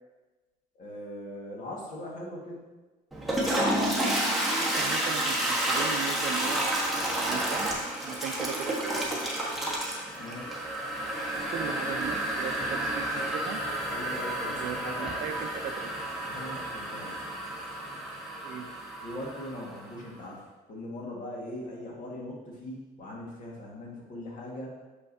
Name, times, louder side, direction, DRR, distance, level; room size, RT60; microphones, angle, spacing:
voice 1, 0.8-2.7 10.2-10.6 13.9-15.4 16.3-17.2 19.0-24.7, left 1 dB, 50° left, -3 dB, 1.7 m, -40 dB
Toilet flush, 3.1-19.9, right 1 dB, ahead, 1.2 m, -30 dB
voice 2, 4.5-6.8 7.2-7.7 8.0-9.2 11.3-13.6 14.5-15.9 18.4-18.7, right 8 dB, 60° right, 6 dB, 0.5 m, -38 dB
6.4 x 5.6 x 2.7 m, 1.2 s
cardioid pair, 110°, 17 cm